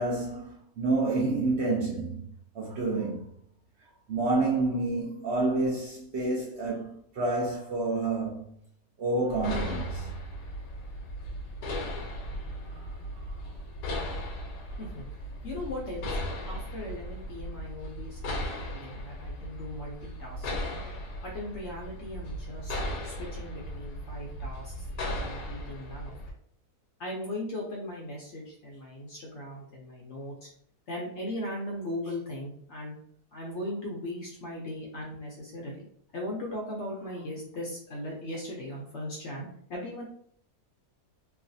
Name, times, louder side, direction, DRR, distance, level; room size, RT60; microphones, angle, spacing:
voice 1, 0.0-2.3 2.5-3.2 4.1-8.5 9.0-10.2 12.8-12.9 13.3-13.4, right 2 dB, 60° right, 0.8 m, -29 dB
sound 1, 9.3-26.3, left 1 dB, 85° left, 1.2 m, -37 dB
voice 2, 15.4-16.1 16.4-20.5 21.2-22.7 23.0-24.7 25.0-26.1 27.0-30.5 30.9-33.0 33.3-35.8 36.1-40.0, left 1 dB, 60° left, 0.8 m, -38 dB
3.1 x 2.3 x 2.6 m
omnidirectional pair, 1.7 m